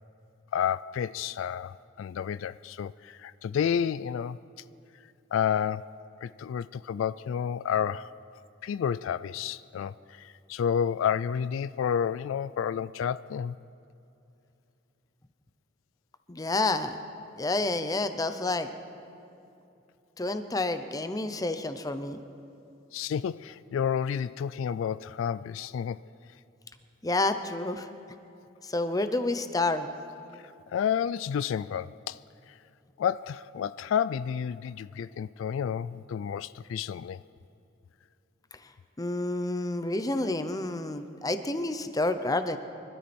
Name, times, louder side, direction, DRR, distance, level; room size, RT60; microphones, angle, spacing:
voice 1, 0.5-4.4 5.3-5.9 6.2-8.1 8.6-13.5 22.9-26.0 30.4-32.2 33.0-37.2, left 8 dB, 80° left, 0.3 m, -30 dB
voice 2, 16.3-17.0 17.4-18.7 20.2-22.2 27.0-27.9 28.6-29.9 39.0-42.6, left 2 dB, 20° left, 0.6 m, -29 dB
25.0 x 12.5 x 4.3 m
head